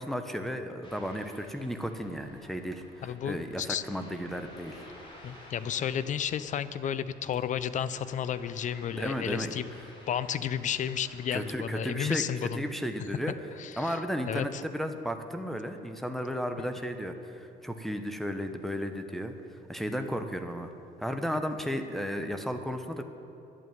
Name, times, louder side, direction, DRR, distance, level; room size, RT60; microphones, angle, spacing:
voice 1, 0.0-4.9 8.9-9.5 11.3-12.2 12.5-13.3 13.8-20.7 21.0-23.0, equal, ahead, 5 dB, 1.0 m, -34 dB
Ocean, 0.8-11.7, left 1 dB, 30° left, 3.5 m, -53 dB
voice 2, 3.0-3.8 5.2-9.7 10.1-12.8 13.6-14.0 14.3-14.6, left 9 dB, 45° left, 15 dB, 0.6 m, -32 dB
11.0 x 8.5 x 9.2 m, 2.8 s
cardioid pair, 110°, 17 cm